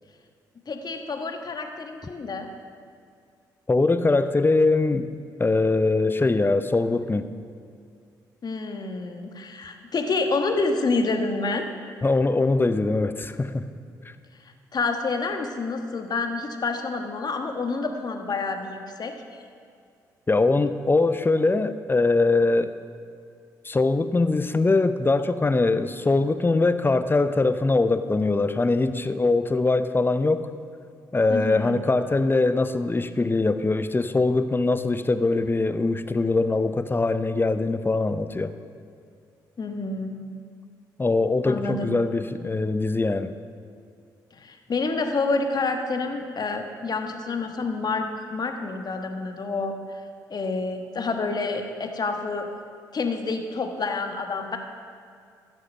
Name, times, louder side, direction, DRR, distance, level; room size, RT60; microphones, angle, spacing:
voice 1, 0.7-2.5 8.4-11.7 14.7-19.1 31.3-31.8 39.6-40.2 41.4-42.0 44.3-49.7 50.3-52.5 52.9-54.6, left 3 dB, 45° left, 5 dB, 1.3 m, -28 dB
voice 2, 3.7-5.1 5.4-7.3 12.0-13.6 20.3-22.7 23.6-30.5 31.1-38.5 41.0-43.3, left 3 dB, 25° left, 11 dB, 0.7 m, -22 dB
15.0 x 6.5 x 5.4 m, 2.3 s
hypercardioid pair, 40°, 9 cm